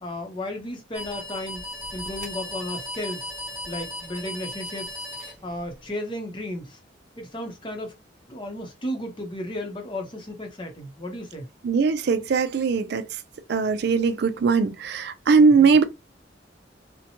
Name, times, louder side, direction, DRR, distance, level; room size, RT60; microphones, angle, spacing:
voice 1, 0.0-1.6 1.9-3.3 3.7-4.9 5.4-6.8 7.2-7.9 8.3-11.5 15.4-15.7, left 1 dB, 25° left, 0.7 m, -34 dB
sound 1, 0.9-5.9, left 1 dB, 10° right, 1.2 m, -36 dB
voice 2, 11.6-13.1 13.5-15.8, right 5 dB, 60° right, 0.4 m, -20 dB
2.8 x 2.1 x 2.8 m
head